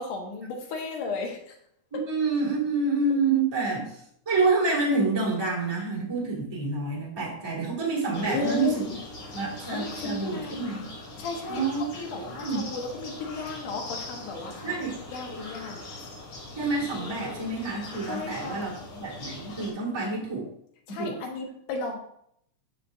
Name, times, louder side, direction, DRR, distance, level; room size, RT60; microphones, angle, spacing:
voice 1, 0.0-1.6 8.3-9.0 9.7-10.8 11.2-11.6 11.9-14.8 15.1-15.8 18.0-18.7 20.9-22.0, left 3 dB, 80° left, 2 dB, 2.8 m, -34 dB
voice 2, 1.9-8.9 9.3-10.8 11.5-11.9 12.2-12.7 14.6-14.9 16.6-20.5 20.9-21.1, right 3 dB, 10° right, -4 dB, 1.4 m, -28 dB
sound 1, 8.1-19.7, left 2 dB, 60° left, 3.8 m, -41 dB
13.0 x 4.9 x 2.6 m, 0.69 s
omnidirectional pair, 3.6 m